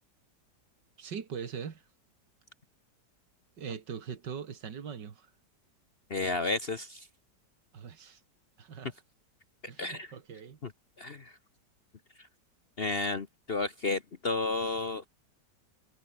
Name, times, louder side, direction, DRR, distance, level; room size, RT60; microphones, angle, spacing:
voice 1, 1.0-1.8 3.6-5.3 7.7-8.2 8.6-8.9 9.7-10.6, right 7 dB, 85° right, 2.5 m, -41 dB
voice 2, 6.1-7.1 9.8-10.1 10.6-10.7 11.0-11.4 12.2-12.3 12.8-15.1, left 3 dB, 40° left, 1.2 m, -32 dB
omnidirectional pair, 1.9 m